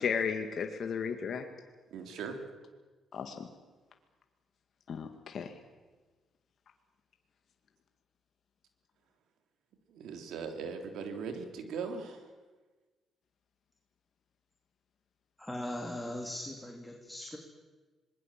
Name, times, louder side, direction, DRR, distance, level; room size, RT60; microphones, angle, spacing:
voice 1, 0.0-1.5 3.1-3.5 4.9-5.6, left 6 dB, 55° left, 5 dB, 2.0 m, -34 dB
voice 2, 1.9-2.4 9.9-12.2, right 5 dB, 80° right, 6 dB, 3.6 m, -39 dB
voice 3, 15.4-17.4, left 1 dB, 5° left, 1 dB, 3.2 m, -39 dB
26.0 x 20.5 x 7.6 m, 1.3 s
cardioid pair, 90°, 0 cm